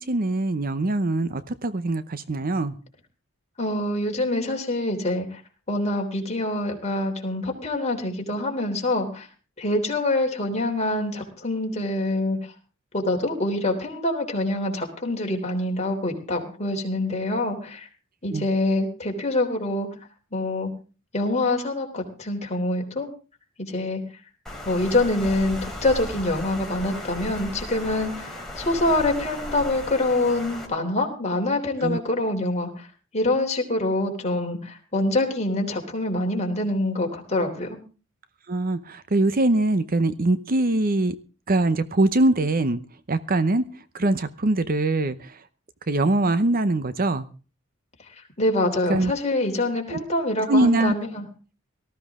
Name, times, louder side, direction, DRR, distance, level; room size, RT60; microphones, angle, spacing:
voice 1, 0.1-2.7 18.3-18.5 31.8-32.0 38.5-41.1 41.5-42.8 43.1-43.6 43.9-45.4 45.9-47.3 48.9-49.1 49.9-50.0 50.5-50.9, right 2 dB, 45° right, 0.8 m, -22 dB
voice 2, 3.6-5.4 5.7-9.3 9.6-12.4 12.9-17.9 18.2-19.9 20.3-20.7 21.1-23.1 23.6-24.0 24.7-32.9 33.1-37.8 48.4-51.3, left 2 dB, 35° left, 3.4 m, -25 dB
Water, 24.5-30.7, left 1 dB, ahead, 3.5 m, -36 dB
18.5 x 14.0 x 3.7 m
head